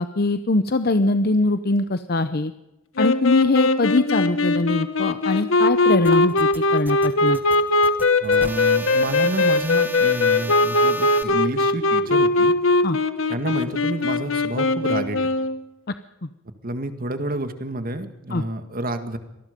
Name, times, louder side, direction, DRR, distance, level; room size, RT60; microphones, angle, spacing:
voice 1, 0.0-2.5 3.0-7.4 12.8-13.0 16.2-16.3 18.3-18.4, left 2 dB, 50° left, 10 dB, 0.8 m, -22 dB
sound 1, 3.0-15.6, left 2 dB, 75° left, 1.4 m, -20 dB
sound 2, 6.0-11.2, right 1 dB, 10° right, 1.5 m, -36 dB
voice 2, 8.2-12.5 13.3-15.2 16.6-19.2, right 1 dB, 45° right, 8 dB, 2.0 m, -29 dB
25.5 x 19.5 x 5.3 m, 0.99 s
head